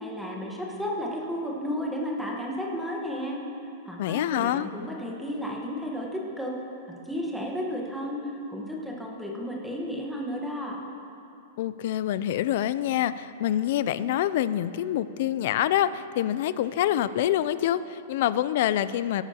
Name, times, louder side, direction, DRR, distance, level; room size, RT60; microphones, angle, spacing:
voice 1, 0.0-3.4 3.8-6.5 7.1-10.8, equal, ahead, -2 dB, 1.2 m, -33 dB
voice 2, 4.0-4.7 11.6-19.2, left 12 dB, 50° left, 15 dB, 0.3 m, -26 dB
17.5 x 9.7 x 2.9 m, 2.9 s
supercardioid pair, 165°, 0 cm